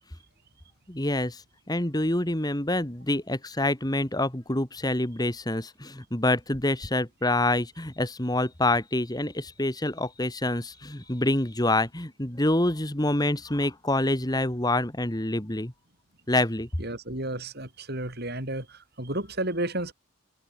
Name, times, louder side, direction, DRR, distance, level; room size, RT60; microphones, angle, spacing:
voice 1, 0.9-1.4 1.7-15.7 16.3-16.7, left 1 dB, 20° left, 1.9 m, -26 dB
voice 2, 16.8-19.9, right 1 dB, 50° right, 6.6 m, -32 dB
head